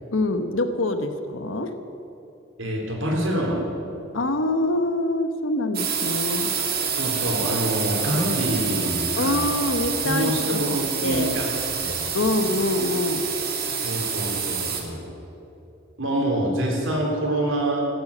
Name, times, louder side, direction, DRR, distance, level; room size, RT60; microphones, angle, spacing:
voice 1, 0.1-1.7 4.1-6.5 9.2-11.4 12.1-13.3, left 2 dB, 85° left, 8 dB, 1.0 m, -25 dB
voice 2, 2.6-3.6 6.9-9.4 10.0-11.5 11.8-12.1 13.8-15.1 16.0-17.9, right 1 dB, 85° right, -1 dB, 3.8 m, -26 dB
sound 1, 5.7-14.8, right 6 dB, 50° right, 2.3 m, -27 dB
15.0 x 10.5 x 8.4 m, 2.9 s
head